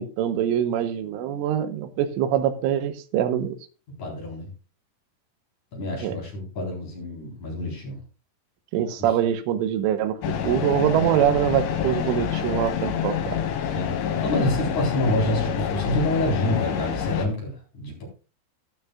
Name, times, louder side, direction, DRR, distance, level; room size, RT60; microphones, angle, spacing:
voice 1, 0.0-3.6 6.0-6.2 8.7-13.4, right 10 dB, 85° right, 10 dB, 3.5 m, -24 dB
voice 2, 4.0-4.5 5.7-8.0 13.7-18.1, left 1 dB, 40° left, -1 dB, 5.1 m, -27 dB
sound 1, 10.2-17.3, left 8 dB, 90° left, 4.0 m, -27 dB
12.5 x 12.0 x 2.4 m, 0.34 s
omnidirectional pair, 5.5 m